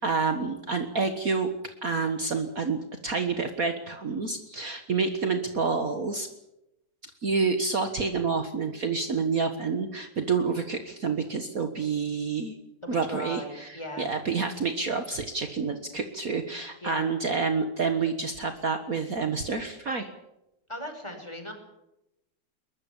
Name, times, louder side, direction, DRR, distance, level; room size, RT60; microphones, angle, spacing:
voice 1, 0.0-1.5 1.8-6.3 7.2-12.6 12.9-20.1, right 4 dB, 50° right, 7 dB, 1.9 m, -28 dB
voice 2, 12.8-14.1 16.8-17.0 20.7-21.5, left 1 dB, 15° left, 4 dB, 5.4 m, -38 dB
22.5 x 21.0 x 7.2 m, 0.88 s
omnidirectional pair, 2.1 m